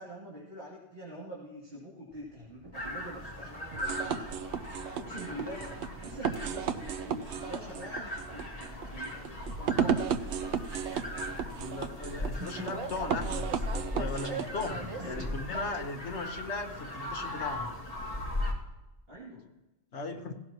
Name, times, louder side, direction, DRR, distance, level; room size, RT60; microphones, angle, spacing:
voice 1, 0.0-4.5 4.9-5.7 6.0-10.1 15.0-15.3 19.1-19.5, equal, 55° right, -6 dB, 2.9 m, -45 dB
Train, 2.1-15.9, right 3 dB, 30° right, 0.9 m, -46 dB
sound 1, 2.7-18.5, left 1 dB, 35° left, 2.1 m, -39 dB
sound 2, 3.7-14.7, right 8 dB, 85° right, 0.9 m, -34 dB
voice 2, 11.5-13.5 13.9-17.7 19.9-20.3, left 3 dB, 80° left, 5 dB, 1.5 m, -37 dB
17.0 x 16.0 x 3.0 m, 1.0 s
omnidirectional pair, 1.1 m